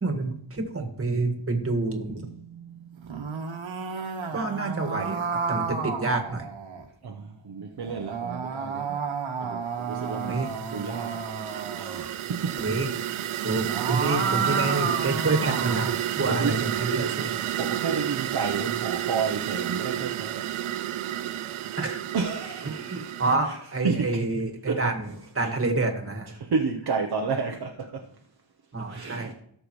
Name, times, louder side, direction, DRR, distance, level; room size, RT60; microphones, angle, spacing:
voice 1, 0.0-2.3 4.3-6.5 10.3-10.5 12.6-12.9 13.4-17.4 21.8-22.0 22.9-25.1 25.4-26.3 28.7-29.3, right 3 dB, 30° right, 1.7 m, -28 dB
voice 2, 2.2-3.3 7.0-9.0 9.4-12.7 16.3-16.7 17.6-20.5 22.1-25.5 26.3-28.2 28.8-29.3, right 5 dB, 50° right, 0.8 m, -32 dB
sound 1, 3.0-6.9 7.8-12.1 13.5-16.0, right 5 dB, 70° right, 1.5 m, -31 dB
sound 2, 10.0-23.4, right 12 dB, 85° right, 0.6 m, -31 dB
17.5 x 6.8 x 3.1 m
wide cardioid pair, 120°, 48 cm